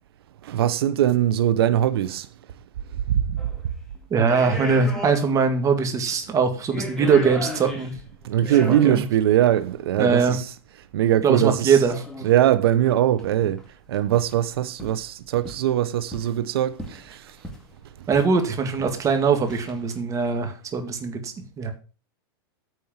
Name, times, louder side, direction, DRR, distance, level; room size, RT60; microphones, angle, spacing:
voice 1, 0.4-2.3 3.2-3.4 8.2-10.5 10.9-11.8 12.2-13.6 13.9-17.4, right 11 dB, 80° right, 0.8 m, -21 dB
sound 1, 3.4-3.6 4.1-5.6 5.8-5.9 6.5-9.1 10.1-10.2 11.9-12.4 12.9-13.0 13.2-13.7 13.9-14.4 14.8-15.0 15.4-16.4 16.8-17.7 18.1-18.3 18.6-19.0 19.5-19.9, left 1 dB, 5° left, 2.1 m, -36 dB
voice 2, 4.1-7.9 8.4-9.0 10.0-10.4 11.2-11.9 18.1-21.7, right 5 dB, 25° right, 2.0 m, -22 dB
9.1 x 4.5 x 7.4 m
supercardioid pair, 130°, 13 cm